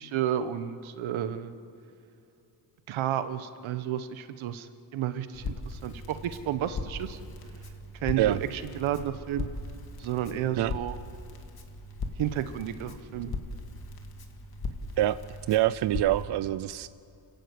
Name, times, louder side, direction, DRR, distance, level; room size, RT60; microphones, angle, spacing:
voice 1, 0.0-1.5 2.9-7.2 8.0-9.5 10.0-11.0 12.2-13.4, right 10 dB, 85° right, 11 dB, 1.3 m, -32 dB
Crackle, 5.3-16.2, left 2 dB, 50° left, 2.3 m, -39 dB
voice 2, 15.5-16.9, right 14 dB, 60° right, 15 dB, 0.6 m, -25 dB
29.0 x 15.0 x 8.4 m, 2.7 s
cardioid pair, 110°, 46 cm